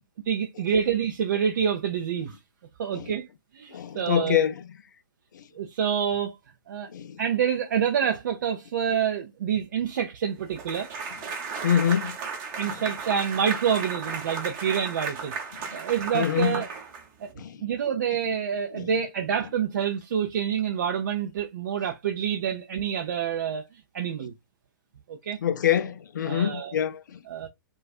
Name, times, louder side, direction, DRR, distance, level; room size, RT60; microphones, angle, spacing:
voice 1, 0.3-2.4 2.8-3.3 3.5-4.4 5.5-6.4 6.7-6.9 7.2-10.9 12.6-15.4 15.7-16.7 17.2-17.3 17.6-24.3 25.1-25.4 26.3-26.8 27.3-27.5, right 8 dB, 55° right, 0.4 m, -27 dB
voice 2, 3.7-4.5 6.9-7.2 11.6-12.1 16.1-16.6 17.4-17.6 18.8-18.9 25.4-27.2, left 9 dB, 60° left, 0.4 m, -25 dB
sound 1, 10.6-17.3, right 5 dB, 30° right, 0.7 m, -35 dB
2.3 x 2.3 x 2.3 m
figure-of-eight pair, 115°, 11 cm